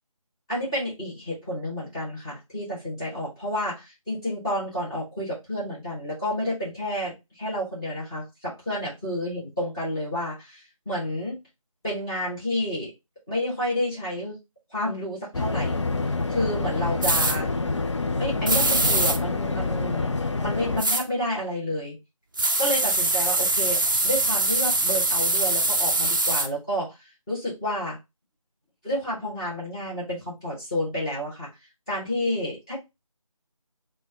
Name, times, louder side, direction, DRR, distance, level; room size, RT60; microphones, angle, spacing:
voice 1, 0.5-11.4 11.8-12.9 13.3-14.4 14.7-15.8 16.3-17.5 18.2-20.1 20.4-22.0 22.6-27.0 27.3-28.0 28.8-31.5 31.9-32.8, left 1 dB, 5° left, -9 dB, 0.8 m, -30 dB
sound 1, 15.3-20.8, left 3 dB, 55° left, 0.5 m, -27 dB
sound 2, 17.0-17.4 18.5-19.2 20.8-21.0 22.4-26.5, right 2 dB, 35° right, 0.5 m, -23 dB
4.2 x 2.2 x 3.6 m, 0.23 s
figure-of-eight pair, 165°, 18 cm